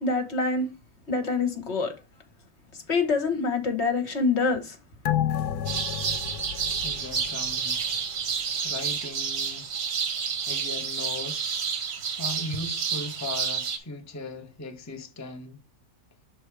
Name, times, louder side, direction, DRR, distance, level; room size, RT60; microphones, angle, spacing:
voice 1, 0.0-0.7 1.1-1.9 2.9-4.8, left 4 dB, 45° left, 1.4 m, -25 dB
sound 1, 5.1-8.0 8.3-8.4, left 10 dB, 85° left, 1.1 m, -30 dB
sound 2, 5.7-13.8, right 6 dB, 80° right, 1.6 m, -30 dB
voice 2, 6.8-7.8 8.3-9.7 10.4-15.6, left 2 dB, 15° left, 0.6 m, -38 dB
6.3 x 4.1 x 4.6 m
omnidirectional pair, 1.6 m